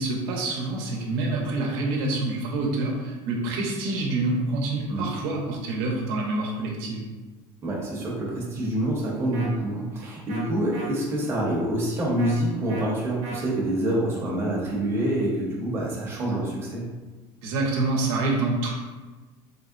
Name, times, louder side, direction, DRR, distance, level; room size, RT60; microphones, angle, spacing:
voice 1, 0.0-7.1 17.4-18.7, right 2 dB, 85° right, -1 dB, 0.7 m, -27 dB
voice 2, 7.6-16.8, right 1 dB, 20° right, -5 dB, 0.7 m, -26 dB
sound 1, 9.3-9.5 10.3-10.4 10.7-10.9 12.2-12.3 12.7-12.9 13.2-13.4, right 3 dB, 60° right, 0.8 m, -37 dB
3.5 x 2.0 x 2.4 m, 1.3 s
cardioid pair, 150°, 12 cm